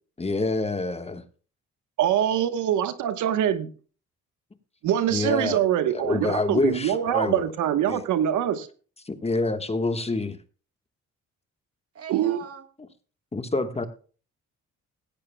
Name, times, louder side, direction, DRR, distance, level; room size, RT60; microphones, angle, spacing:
voice 1, 0.2-1.2 5.1-5.6 5.9-7.5 7.9-8.0 9.0-10.4 13.3-13.8, left 3 dB, 20° left, 1.4 m, -27 dB
voice 2, 2.0-3.7 4.8-8.7 12.1-12.4, right 10 dB, 85° right, 1.2 m, -24 dB
voice 3, 12.0-12.6, right 7 dB, 50° right, 2.1 m, -40 dB
17.0 x 13.5 x 2.2 m
cardioid pair, 90°, 30 cm